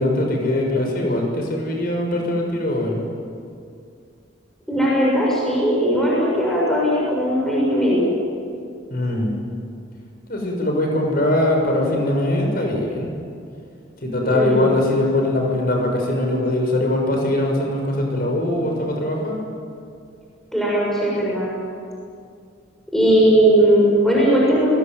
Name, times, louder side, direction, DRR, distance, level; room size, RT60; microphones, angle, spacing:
voice 1, 0.0-3.0 8.9-9.3 10.3-13.1 14.0-19.4, left 1 dB, 50° left, 1 dB, 6.2 m, -21 dB
voice 2, 4.7-8.1 14.3-14.7 20.5-21.5 22.9-24.8, right 1 dB, ahead, -5 dB, 6.8 m, -18 dB
29.5 x 19.5 x 9.4 m, 2.4 s
head